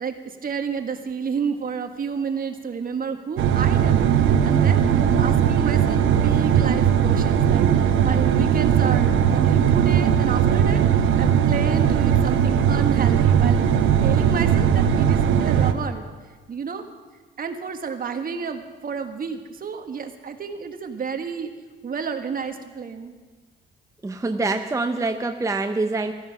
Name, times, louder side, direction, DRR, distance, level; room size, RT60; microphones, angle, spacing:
voice 1, 0.0-4.8 5.2-16.1 16.5-16.9 17.4-21.5 21.8-23.1, right 6 dB, 45° right, 6 dB, 1.6 m, -30 dB
sound 1, 3.4-15.7, right 8 dB, 85° right, 1.0 m, -19 dB
voice 2, 24.0-26.1, right 3 dB, 15° right, 6 dB, 0.7 m, -25 dB
15.0 x 13.0 x 6.0 m, 1.4 s
cardioid pair, 90°, 20 cm